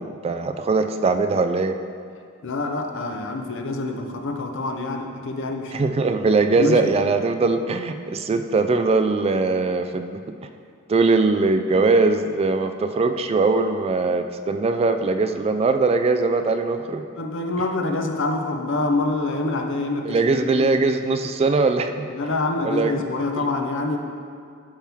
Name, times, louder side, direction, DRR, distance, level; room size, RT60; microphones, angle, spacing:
voice 1, 0.0-1.8 5.7-10.3 10.9-17.1 20.1-22.1 22.6-22.9 23.4-23.5, right 3 dB, 30° right, 8 dB, 0.3 m, -21 dB
voice 2, 2.4-5.9 6.5-6.9 17.2-20.7 22.1-24.0, left 2 dB, 60° left, 4 dB, 0.7 m, -26 dB
10.0 x 5.9 x 3.5 m, 2.3 s
head